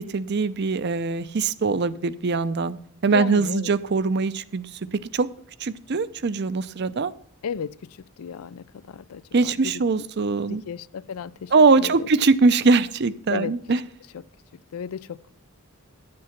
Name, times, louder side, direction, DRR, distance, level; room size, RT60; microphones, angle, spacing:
voice 1, 0.0-2.8 3.0-4.7 5.1-5.3 5.6-7.1 9.3-10.6 11.5-13.8, right 4 dB, 50° right, 0.5 m, -22 dB
voice 2, 3.1-3.7 7.4-10.0 10.4-12.1 13.3-13.5 14.1-14.2 14.7-15.3, left 7 dB, 85° left, 0.4 m, -34 dB
11.0 x 7.6 x 5.8 m
head